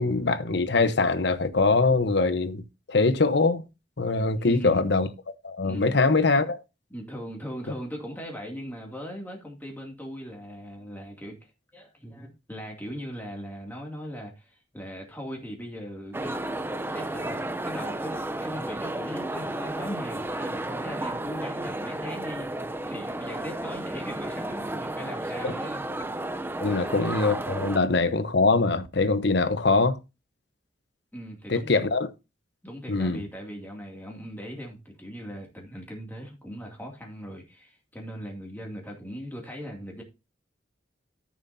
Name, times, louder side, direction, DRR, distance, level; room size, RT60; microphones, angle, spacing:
voice 1, 0.0-2.6 2.9-3.6 4.0-5.1 5.4-6.6 25.4-25.5 26.6-30.0 31.5-32.1 32.9-33.2, left 3 dB, 65° left, 1.0 m, -23 dB
voice 2, 4.4-4.8 5.6-6.0 6.9-16.4 16.9-25.8 26.6-26.9 31.1-31.8 32.6-40.0, equal, 10° left, 2.4 m, -39 dB
sound 1, 16.1-27.8, right 1 dB, 10° right, 0.6 m, -33 dB
13.5 x 7.2 x 2.7 m
head